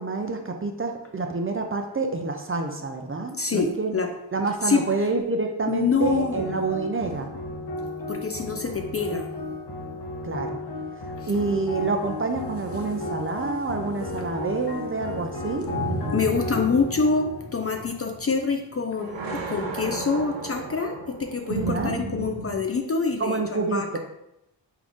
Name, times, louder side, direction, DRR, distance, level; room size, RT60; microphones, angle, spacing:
voice 1, 0.0-3.9 4.3-7.3 10.2-10.6 11.3-15.6 21.6-21.9 23.2-24.0, right 3 dB, 30° right, 4 dB, 0.4 m, -28 dB
voice 2, 3.4-4.1 4.6-5.1 5.7-6.5 8.1-9.3 11.2-11.3 14.2-14.3 16.1-24.0, left 4 dB, 35° left, 4 dB, 0.4 m, -26 dB
sound 1, 6.0-18.5, left 2 dB, 60° left, 0.9 m, -34 dB
sound 2, 15.6-18.7 19.0-22.6, right 3 dB, 70° right, 0.7 m, -33 dB
3.6 x 2.4 x 3.5 m, 0.85 s
cardioid pair, 65°, 46 cm